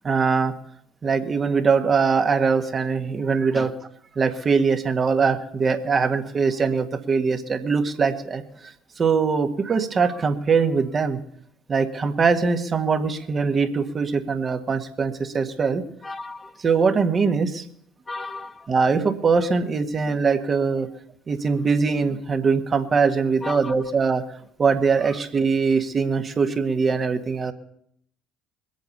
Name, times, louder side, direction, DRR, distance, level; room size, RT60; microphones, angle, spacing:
voice 1, 0.0-0.5 1.0-3.7 4.1-8.4 9.0-11.2 11.7-15.8 16.6-17.6 18.7-20.9 21.3-24.2 24.6-27.5, right 5 dB, 35° right, 1.7 m, -22 dB
voice 2, 16.0-16.5 18.1-18.7 23.4-23.7 25.0-25.1, left 3 dB, 20° left, 1.4 m, -34 dB
21.5 x 8.3 x 6.7 m
hypercardioid pair, 65°, 0 cm